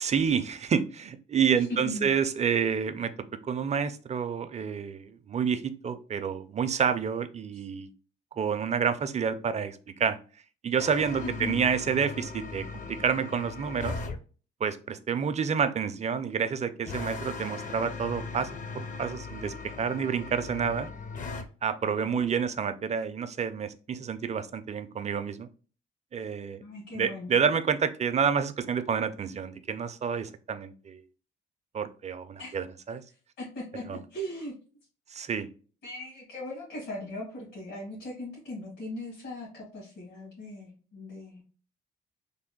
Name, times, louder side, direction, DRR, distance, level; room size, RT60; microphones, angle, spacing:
voice 1, 0.0-3.1 3.4-7.9 8.4-10.2 10.6-14.0 14.6-18.5 18.7-20.9 21.6-25.5 26.1-26.6 26.9-31.0 31.7-33.0 33.9-34.0 35.1-35.5, right 7 dB, 35° right, 10 dB, 0.4 m, -29 dB
sound 1, 10.8-14.2 16.9-21.5, left 4 dB, 40° left, 0.5 m, -38 dB
voice 2, 11.2-11.6 21.9-22.3 26.6-27.3 32.4-32.6 33.4-34.5 35.8-41.4, left 1 dB, 80° left, -5 dB, 1.8 m, -39 dB
3.4 x 2.2 x 3.7 m, 0.38 s
cardioid pair, 90°, 20 cm